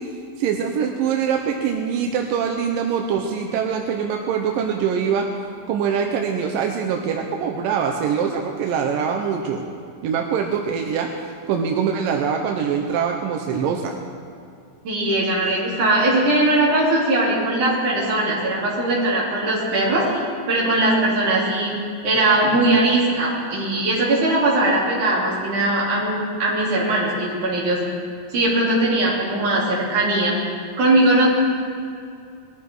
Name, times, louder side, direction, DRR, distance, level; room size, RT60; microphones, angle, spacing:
voice 1, 0.0-5.3 5.7-9.7 10.0-13.9, right 7 dB, 75° right, 2 dB, 2.2 m, -23 dB
voice 2, 14.8-21.7 22.0-27.8 28.3-30.3 30.8-31.3, right 2 dB, 50° right, -6 dB, 4.7 m, -20 dB
20.5 x 13.5 x 4.7 m, 2.3 s
omnidirectional pair, 4.7 m